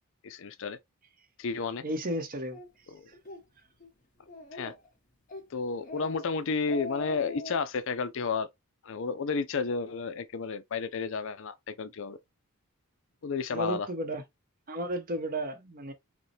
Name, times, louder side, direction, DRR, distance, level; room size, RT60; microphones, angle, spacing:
voice 1, 0.2-0.8 1.4-1.8 2.9-3.1 4.5-4.7 5.5-8.5 8.8-12.2 13.2-13.9, left 4 dB, 60° left, 0.5 m, -32 dB
voice 2, 1.8-2.6 13.5-14.2 14.7-15.9, right 1 dB, 40° right, 0.8 m, -33 dB
Speech, 2.5-2.7 3.1-3.4 3.8-3.9 4.3-4.9 5.3-5.5 5.8-6.2 6.5-7.6, left 2 dB, 35° left, 1.1 m, -41 dB
5.1 x 2.2 x 3.2 m
head